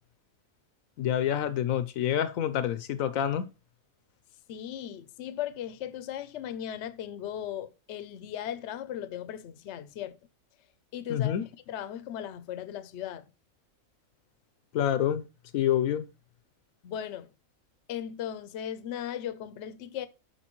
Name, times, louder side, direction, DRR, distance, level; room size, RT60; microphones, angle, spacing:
voice 1, 1.0-3.4 11.1-11.4 14.7-15.2 15.5-16.1, left 10 dB, 80° left, 1.0 m, -27 dB
voice 2, 4.5-10.2 10.9-11.4 11.7-13.3 16.8-17.3 17.9-20.1, left 10 dB, 60° left, 0.9 m, -37 dB
11.0 x 4.6 x 3.0 m
omnidirectional pair, 1.5 m